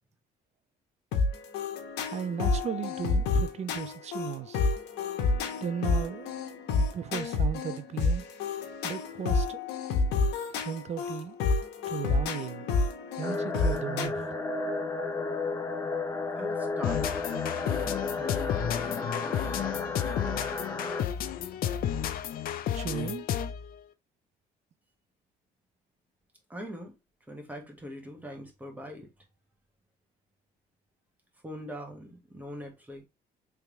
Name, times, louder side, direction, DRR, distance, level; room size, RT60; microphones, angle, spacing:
sound 1, 1.1-14.1, left 3 dB, 85° left, 1.0 m, -29 dB
voice 1, 2.1-4.7 5.6-6.3 6.7-8.2 8.8-9.6 10.6-11.4 11.9-12.7 13.2-14.4 22.7-23.3, right 8 dB, 40° right, 0.5 m, -36 dB
sound 2, 13.2-21.0, left 3 dB, 15° left, 0.6 m, -33 dB
voice 2, 16.4-17.1 17.8-19.6 26.5-26.9 27.3-29.1 31.4-33.1, equal, 10° right, 1.5 m, -42 dB
sound 3, 16.8-23.7, left 9 dB, 60° left, 0.5 m, -32 dB
3.5 x 3.4 x 3.1 m
cardioid pair, 110°, 17 cm